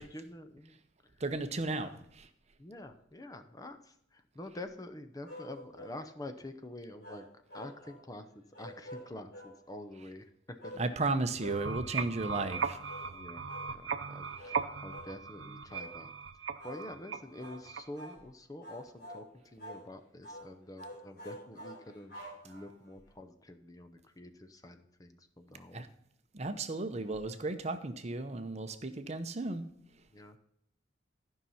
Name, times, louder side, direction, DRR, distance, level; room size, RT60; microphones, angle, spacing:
voice 1, 0.0-1.2 1.7-2.0 2.6-7.3 7.5-10.3 10.6-10.7 13.0-16.1 16.6-22.2 22.4-25.9 30.1-30.4, left 1 dB, 20° left, 8 dB, 0.6 m, -47 dB
voice 2, 1.2-1.9 2.2-2.3 10.8-12.8 25.7-25.9 26.3-29.7, right 2 dB, 35° right, 9 dB, 0.7 m, -34 dB
sound 1, 5.2-6.0 7.0-8.0 8.5-9.6 10.6-10.9 11.4-11.6 12.3-12.6 12.9-13.1 13.5-13.7 14.3-14.6 14.9-15.1 15.7-16.0 16.6-16.8 17.4-17.6 17.9-18.2 18.6-19.3 19.6-19.8 20.2-20.5 20.8-22.9, equal, 55° left, 4.2 m, -47 dB
sound 2, 11.4-18.1, right 5 dB, 75° right, 0.6 m, -38 dB
12.0 x 5.6 x 5.6 m, 0.74 s
head